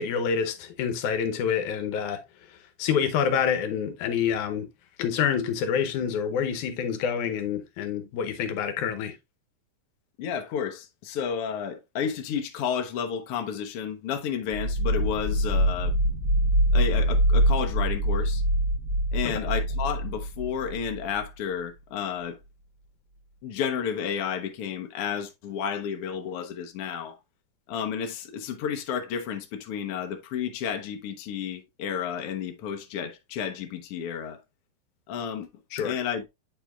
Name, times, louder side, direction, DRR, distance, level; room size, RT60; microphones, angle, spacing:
voice 1, 0.0-2.2 2.8-4.7 5.0-9.2 19.2-19.3 35.7-36.0, left 7 dB, 80° left, 2.3 m, -27 dB
voice 2, 10.2-15.9 16.7-18.4 19.1-22.4 23.4-27.2 27.7-34.4 35.1-35.5 35.8-36.3, left 7 dB, 65° left, 1.6 m, -31 dB
sound 1, 14.5-21.2, right 1 dB, 5° right, 1.8 m, -24 dB
8.9 x 5.0 x 2.3 m
omnidirectional pair, 3.5 m